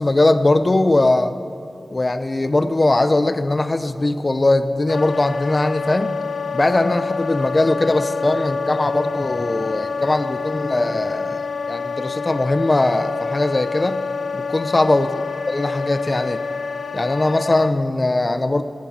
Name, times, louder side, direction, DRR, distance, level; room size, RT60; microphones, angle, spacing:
voice 1, 0.0-1.3 1.9-6.1 6.5-14.0 14.3-15.1 15.5-16.4 16.9-18.6, left 2 dB, 35° left, 11 dB, 0.7 m, -20 dB
Wind instrument woodwind instrument, 4.9-17.7, left 5 dB, 85° left, 0.6 m, -27 dB
17.0 x 16.5 x 4.3 m, 2.5 s
wide cardioid pair, 105°, 0 cm